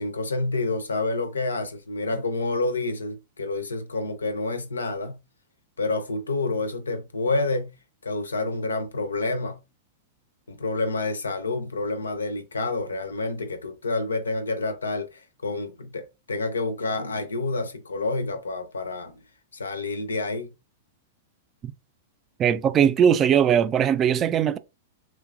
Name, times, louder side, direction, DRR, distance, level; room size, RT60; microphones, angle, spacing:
voice 1, 0.0-5.2 5.8-7.7 8.0-9.6 10.5-19.2 19.5-20.5, left 3 dB, 85° left, 0.5 m, -28 dB
voice 2, 22.4-24.6, right 8 dB, 30° right, 0.3 m, -20 dB
3.0 x 2.2 x 2.4 m
hypercardioid pair, 105°, 0 cm